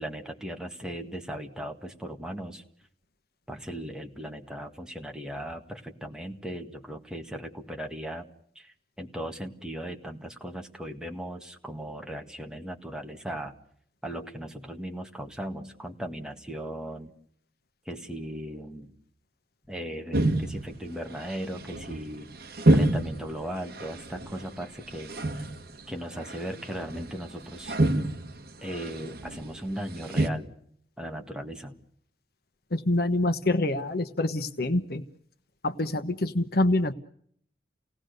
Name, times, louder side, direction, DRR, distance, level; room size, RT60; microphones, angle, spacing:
voice 1, 0.0-2.6 3.5-8.3 8.6-13.6 14.0-17.1 17.9-18.9 19.7-25.5 25.9-27.7 28.6-30.6 31.0-31.8, right 1 dB, 5° right, 3 dB, 1.8 m, -37 dB
sound 1, 20.1-30.3, right 1 dB, 60° right, 1.8 m, -28 dB
voice 2, 32.7-35.0 35.6-36.9, left 2 dB, 60° left, 11 dB, 1.2 m, -26 dB
29.5 x 18.0 x 6.7 m, 0.67 s
head